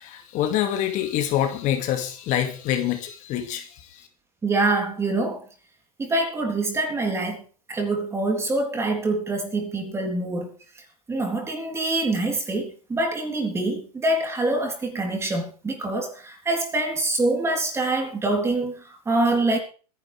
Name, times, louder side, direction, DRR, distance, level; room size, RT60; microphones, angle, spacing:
voice 1, 0.0-4.1, left 11 dB, 35° left, 2.3 m, -26 dB
voice 2, 4.4-5.4 6.0-7.4 7.7-10.5 11.1-19.6, right 2 dB, 15° right, 3.8 m, -25 dB
23.5 x 11.0 x 3.5 m
hypercardioid pair, 125°, 21 cm